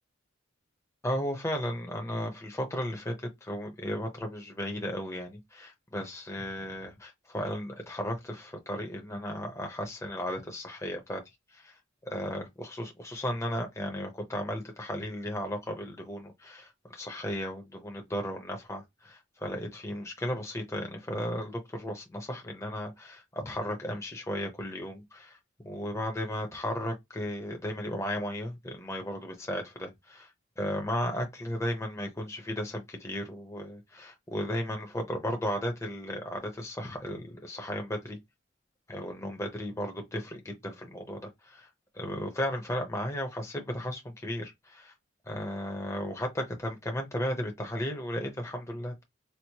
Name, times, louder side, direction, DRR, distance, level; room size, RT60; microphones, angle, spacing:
voice 1, 1.0-11.2 11.5-11.7 12.1-25.4 25.6-30.3 30.6-38.2 38.9-41.7 41.9-44.9 45.3-49.0, equal, 15° left, 0.7 m, -35 dB
4.5 x 2.0 x 2.8 m
head